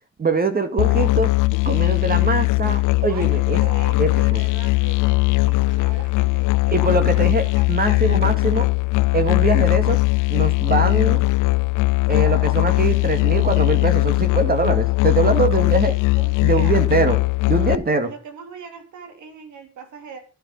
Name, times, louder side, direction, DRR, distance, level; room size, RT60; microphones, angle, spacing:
voice 1, 0.2-1.3 1.6-3.6 4.0-4.4 6.7-8.7 9.1-10.0 10.3-11.2 12.1-16.0 16.4-17.2 17.5-18.1, right 3 dB, 30° right, 9 dB, 2.2 m, -22 dB
Musical instrument, 0.8-17.7, left 23 dB, 90° left, 0.7 m, -19 dB
voice 2, 3.1-8.4 16.1-16.8 18.0-20.2, right 4 dB, 75° right, 6 dB, 3.7 m, -40 dB
11.5 x 11.0 x 5.5 m, 0.35 s
cardioid pair, 90°, 30 cm